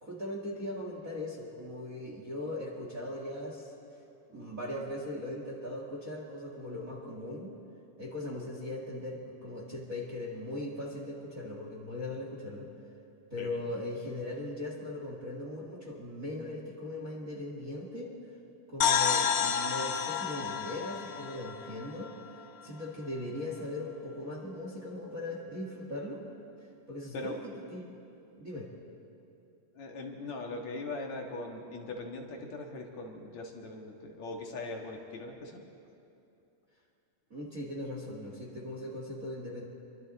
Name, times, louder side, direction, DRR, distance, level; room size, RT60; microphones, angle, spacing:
voice 1, 0.0-3.7 4.3-7.5 8.0-12.7 13.3-18.1 18.7-22.1 22.6-26.2 26.9-27.9 28.4-28.7 37.3-39.7, left 1 dB, 30° right, -1 dB, 1.9 m, -39 dB
sound 1, 18.8-22.4, left 7 dB, 90° left, 1.1 m, -30 dB
voice 2, 29.8-35.6, left 2 dB, 60° left, 1 dB, 2.7 m, -40 dB
28.5 x 23.5 x 4.1 m, 2.7 s
omnidirectional pair, 3.9 m